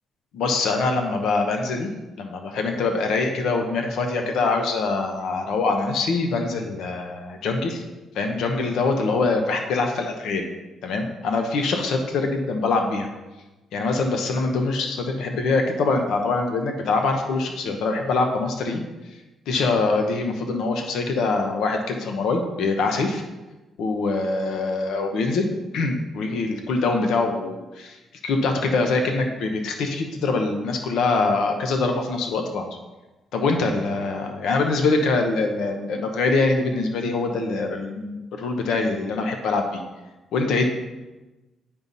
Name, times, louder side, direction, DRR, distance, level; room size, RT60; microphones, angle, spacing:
voice 1, 0.3-1.9 2.2-7.8 8.1-10.5 10.8-13.1 13.7-18.8 19.5-23.2 23.8-25.5 25.7-28.0 28.2-32.7 33.3-39.8 40.3-40.7, left 3 dB, 80° left, 4 dB, 1.0 m, -24 dB
8.8 x 5.6 x 4.1 m, 1.1 s
cardioid pair, 90°, 0 cm